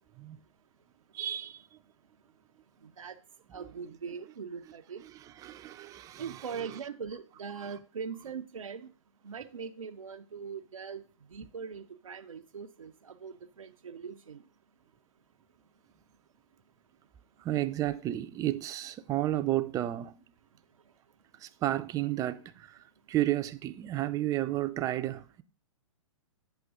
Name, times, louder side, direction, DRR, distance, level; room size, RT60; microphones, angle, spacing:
voice 1, 1.1-1.8 3.5-3.7 5.0-6.8 17.4-20.2 21.4-25.4, right 14 dB, 20° right, 0.4 m, -32 dB
voice 2, 2.8-3.2 3.5-5.0 6.2-8.9 9.2-11.0 11.3-14.4, right 6 dB, 90° right, 0.5 m, -41 dB
8.0 x 5.6 x 3.6 m
hypercardioid pair, 115°, 17 cm